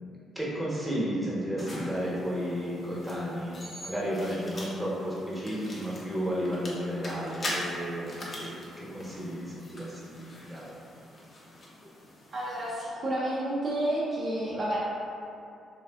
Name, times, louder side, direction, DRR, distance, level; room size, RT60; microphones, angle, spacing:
voice 1, 0.3-10.7, equal, 5° right, -8 dB, 0.9 m, -33 dB
sound 1, 1.6-12.8, left 1 dB, 40° left, 0.5 m, -42 dB
voice 2, 12.3-14.8, right 1 dB, 45° right, -6 dB, 0.4 m, -30 dB
3.3 x 2.4 x 2.3 m, 2.6 s
cardioid pair, 90°, 0 cm